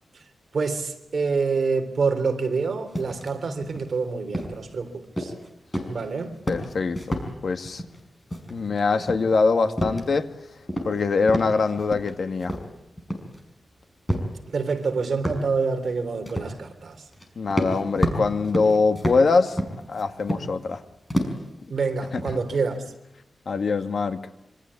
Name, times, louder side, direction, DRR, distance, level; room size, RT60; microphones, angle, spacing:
voice 1, 0.5-5.3 5.9-6.4 14.5-16.9 21.7-22.8, right 4 dB, 50° right, 3.4 m, -26 dB
sound 1, 2.9-3.3 3.6-3.9 4.3-4.7 5.2-5.5 5.7-6.1 6.3-7.3 7.6-8.0 8.3-8.7 9.0-10.3 10.7-11.0 11.3-12.1 12.4-13.4 14.1-14.3 14.8-14.9 15.2-15.5 16.2-16.5 17.1-17.2 17.5-20.7 21.1-21.5 21.9-22.8, equal, 15° left, 5.4 m, -29 dB
voice 2, 6.5-7.8 8.5-10.3 10.9-12.6 17.4-19.6 19.9-20.8 22.1-22.3 23.5-24.3, left 4 dB, 55° left, 1.8 m, -23 dB
27.0 x 25.5 x 8.5 m
wide cardioid pair, 175°, 0 cm